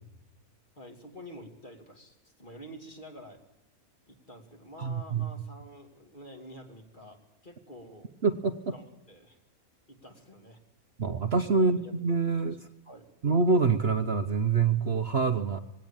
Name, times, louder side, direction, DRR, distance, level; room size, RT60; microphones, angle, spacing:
voice 1, 0.8-3.4 4.1-8.1 8.7-9.4 9.9-10.6 11.5-11.9 12.8-13.2, equal, 35° left, 4 dB, 3.0 m, -48 dB
voice 2, 4.8-5.3 8.2-8.7 11.0-12.7 13.2-15.6, right 4 dB, 50° right, 9 dB, 1.1 m, -26 dB
19.5 x 17.5 x 9.0 m, 0.87 s
omnidirectional pair, 1.5 m